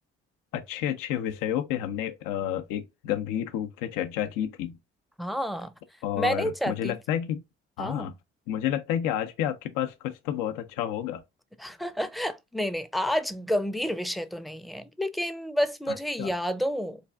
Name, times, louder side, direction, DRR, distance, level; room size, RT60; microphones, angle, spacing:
voice 1, 0.5-4.8 6.0-7.4 7.8-8.1 8.5-11.2 16.2-16.3, left 10 dB, 80° left, 0.5 m, -30 dB
voice 2, 5.2-5.7 6.2-6.9 7.8-8.1 11.6-17.0, equal, ahead, 0.5 m, -29 dB
3.2 x 2.5 x 3.3 m
hypercardioid pair, 45°, 33 cm